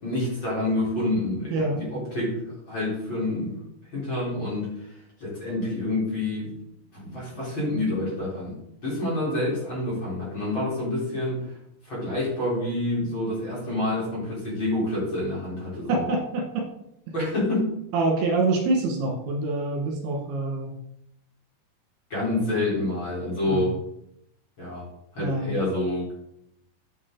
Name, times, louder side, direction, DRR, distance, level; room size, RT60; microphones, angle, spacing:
voice 1, 0.0-3.6 3.9-6.5 6.9-11.6 11.8-16.0 17.1-17.7 22.1-23.8 24.6-24.8 25.1-26.1, left 1 dB, 30° left, -6 dB, 4.4 m, -28 dB
voice 2, 1.5-1.8 15.9-16.6 17.9-20.7 23.5-23.6 25.2-25.6, right 2 dB, 70° right, 0 dB, 3.7 m, -25 dB
9.4 x 8.5 x 3.9 m, 0.78 s
omnidirectional pair, 4.8 m